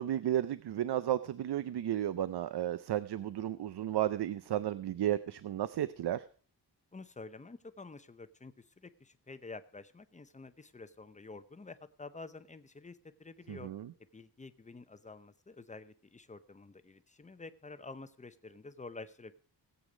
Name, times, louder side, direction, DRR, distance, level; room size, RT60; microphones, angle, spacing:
voice 1, 0.0-6.2 13.5-13.9, right 12 dB, 65° right, 15 dB, 0.6 m, -33 dB
voice 2, 6.9-13.7 14.1-19.3, left 3 dB, 15° left, 11 dB, 0.7 m, -49 dB
17.5 x 8.3 x 5.0 m, 0.43 s
wide cardioid pair, 160°, 43 cm